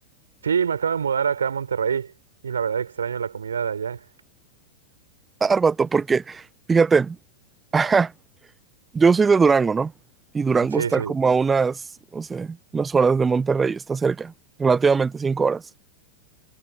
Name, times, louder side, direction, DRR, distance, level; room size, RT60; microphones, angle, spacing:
voice 1, 0.4-2.1 2.4-4.0 10.7-11.1, right 7 dB, 70° right, 4.4 m, -25 dB
voice 2, 5.4-6.4 6.7-7.1 7.7-8.1 8.9-9.9 10.3-11.8 12.1-12.5 12.7-14.3 14.6-15.6, right 5 dB, 15° right, 1.5 m, -20 dB
figure-of-eight pair, 90°, 0 cm